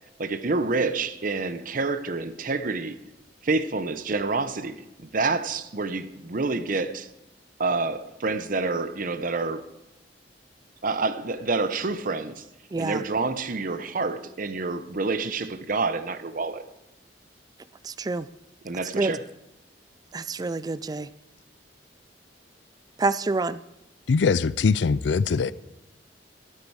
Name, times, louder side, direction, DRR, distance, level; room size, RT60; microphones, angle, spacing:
voice 1, 0.2-3.0 3.4-7.1 7.6-9.6 10.8-12.4 12.8-16.6 18.6-19.2, right 3 dB, 50° right, 0.8 m, -28 dB
voice 2, 12.7-13.0 17.8-18.3 18.9-19.2 20.1-21.1 23.0-23.6, right 3 dB, 20° right, 0.3 m, -27 dB
voice 3, 24.1-25.5, left 5 dB, 80° left, 0.4 m, -22 dB
12.0 x 12.0 x 4.7 m
head